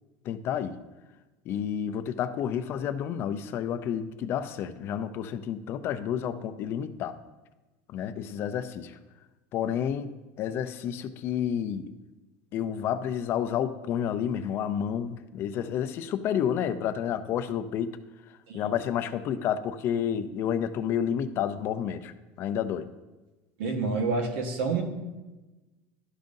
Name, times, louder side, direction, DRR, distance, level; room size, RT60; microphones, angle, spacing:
voice 1, 0.2-0.8 1.5-7.2 7.9-9.0 9.5-12.0 12.5-18.0 18.3-22.9, left 9 dB, 40° left, 11 dB, 0.5 m, -30 dB
voice 2, 23.6-24.8, right 4 dB, 85° right, 4 dB, 1.3 m, -28 dB
12.5 x 5.2 x 2.6 m, 1.1 s
cardioid pair, 155°, 6 cm